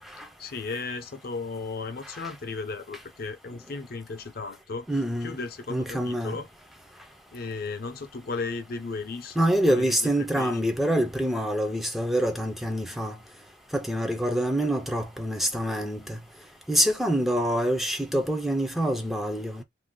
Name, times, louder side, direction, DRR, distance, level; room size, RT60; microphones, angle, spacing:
voice 1, 0.4-6.5 7.3-9.4 9.7-10.6, left 4 dB, 55° left, 0.6 m, -35 dB
voice 2, 4.9-5.4 5.7-6.4 9.4-13.2 13.7-16.2 16.7-19.6, equal, ahead, 0.4 m, -26 dB
2.6 x 2.2 x 3.5 m
head